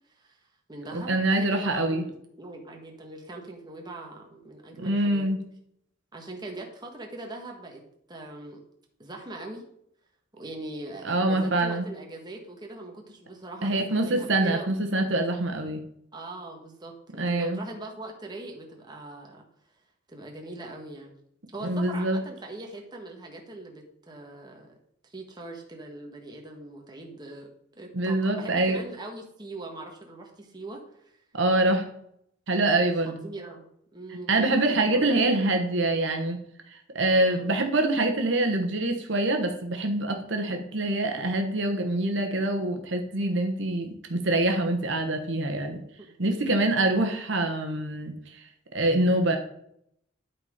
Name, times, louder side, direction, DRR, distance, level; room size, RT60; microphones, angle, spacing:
voice 1, 0.1-5.3 6.1-7.8 8.1-8.6 9.0-9.7 10.3-14.7 16.1-19.4 20.1-21.1 21.5-24.7 25.1-27.5 27.7-31.2 32.8-33.6 33.9-35.2 37.2-37.6 44.9-45.0 46.0-46.7, right 2 dB, 20° right, 1 dB, 1.4 m, -41 dB
voice 2, 0.9-2.0 4.8-5.4 11.0-11.9 13.6-15.8 17.2-17.6 21.6-22.2 27.9-28.8 31.3-31.8 32.5-33.3 34.3-36.4 36.9-45.8 46.2-48.4 48.7-49.4, right 2 dB, 60° right, 4 dB, 1.2 m, -25 dB
11.5 x 4.3 x 5.1 m, 0.72 s
head